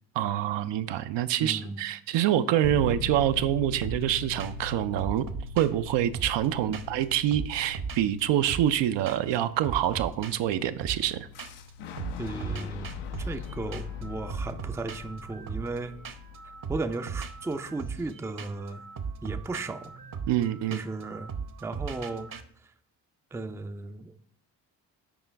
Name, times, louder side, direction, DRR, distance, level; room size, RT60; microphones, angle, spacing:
voice 1, 0.2-5.3 5.6-11.3 20.3-20.8, right 12 dB, 60° right, 11 dB, 0.5 m, -26 dB
voice 2, 1.4-1.9 6.6-6.9 12.2-16.0 16.7-18.9 19.2-19.9 20.7-21.3 21.6-22.3 22.6-22.7 23.3-24.1, right 3 dB, 5° right, 9 dB, 0.4 m, -35 dB
sound 1, 2.6-19.4, left 4 dB, 50° left, 0.8 m, -43 dB
sound 2, 3.8-4.1 4.4-4.7 5.0-7.0 7.3-8.8 9.1-9.4 9.6-11.7 12.0-22.4, right 5 dB, 40° right, 0.9 m, -39 dB
Boom, 11.3-17.2, left 7 dB, 80° left, 0.7 m, -41 dB
7.0 x 5.0 x 3.3 m, 0.62 s
hypercardioid pair, 45°, 50 cm